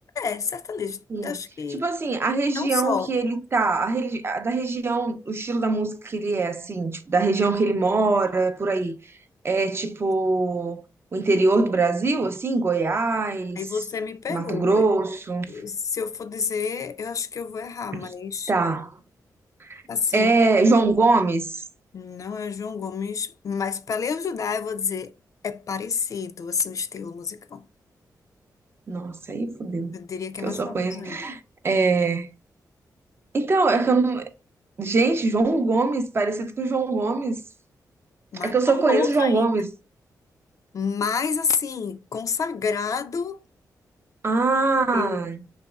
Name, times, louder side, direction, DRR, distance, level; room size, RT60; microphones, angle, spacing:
voice 1, 0.2-1.8 2.5-3.1 13.6-14.8 15.5-18.5 19.9-20.3 21.9-25.1 25.4-27.6 29.9-31.2 38.3-39.5 40.7-43.4 44.9-45.3, left 6 dB, 55° left, 0.4 m, -29 dB
voice 2, 1.7-9.0 9.4-10.8 11.1-13.6 14.3-15.5 17.9-18.1 18.5-18.9 19.7-19.8 20.1-21.6 28.9-29.9 30.4-32.3 33.3-34.3 34.8-37.4 38.3-39.7 44.2-45.4, right 3 dB, 35° right, 0.5 m, -23 dB
4.0 x 3.0 x 2.3 m
wide cardioid pair, 105°, 7 cm